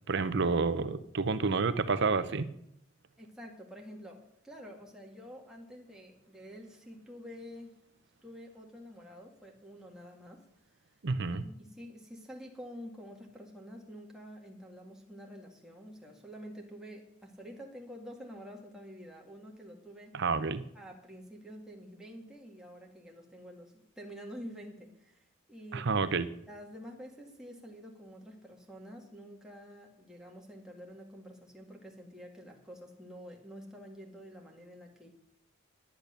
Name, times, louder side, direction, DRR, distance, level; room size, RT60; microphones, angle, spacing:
voice 1, 0.1-2.5 11.0-11.4 20.1-20.6 25.7-26.3, right 4 dB, 55° right, 12 dB, 0.7 m, -29 dB
voice 2, 3.2-7.8 8.2-10.4 11.3-20.2 20.7-25.9 26.5-35.1, equal, 5° right, -1 dB, 2.0 m, -48 dB
10.5 x 10.5 x 6.7 m, 0.74 s
head